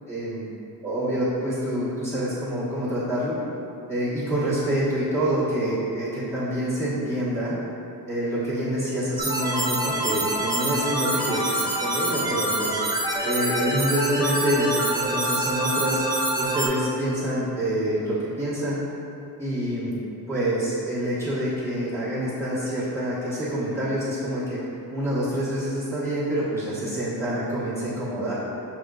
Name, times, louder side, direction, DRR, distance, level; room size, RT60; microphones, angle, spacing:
voice 1, 0.1-0.5 0.8-3.4 3.9-7.6 8.1-12.8 13.2-16.0 16.4-18.8 19.4-19.9 20.3-24.6 24.9-28.3, right 1 dB, 5° left, -12 dB, 1.3 m, -26 dB
sound 1, 9.2-16.7, right 1 dB, 10° right, 0.5 m, -26 dB
6.0 x 3.5 x 2.4 m, 2.9 s
wide cardioid pair, 165°, 37 cm